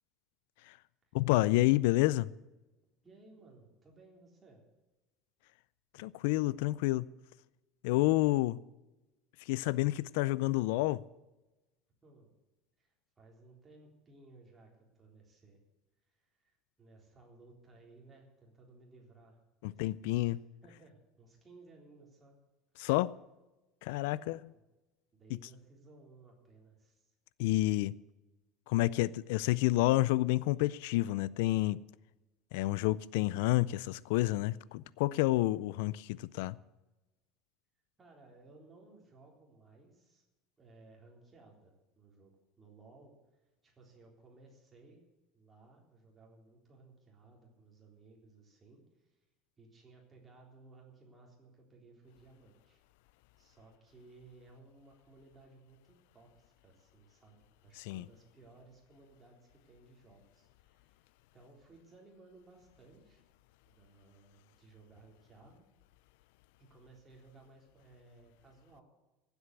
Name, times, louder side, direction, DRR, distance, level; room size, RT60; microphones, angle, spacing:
voice 1, 1.1-2.3 6.0-7.1 7.8-8.6 9.4-11.0 19.6-20.4 22.8-23.1 23.8-24.4 25.3-25.4 27.4-27.9 28.7-31.8 32.5-36.6 57.7-58.1, left 18 dB, 80° left, 0.4 m, -29 dB
voice 2, 3.0-4.6 12.0-12.3 12.8-15.6 16.1-20.4 20.6-22.4 24.1-24.3 25.1-27.1 38.0-40.2 40.6-45.0 45.3-49.2 49.6-52.8 53.4-63.2 63.7-65.6 66.6-68.8, right 3 dB, 15° right, 3.7 m, -59 dB
15.5 x 8.1 x 8.2 m
cardioid pair, 165°, 0 cm